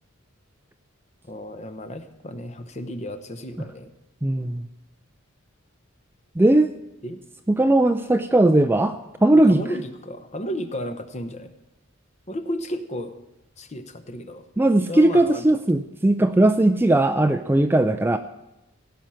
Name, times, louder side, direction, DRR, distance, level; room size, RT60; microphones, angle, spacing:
voice 1, 1.3-3.9 7.0-7.2 9.3-11.5 12.3-13.1 13.6-14.5 14.9-15.6, equal, 35° left, 9 dB, 0.9 m, -33 dB
voice 2, 4.2-4.6 6.4-6.7 7.5-9.6 14.6-18.2, right 1 dB, 10° right, 9 dB, 0.4 m, -18 dB
16.5 x 5.7 x 7.6 m, 0.93 s
head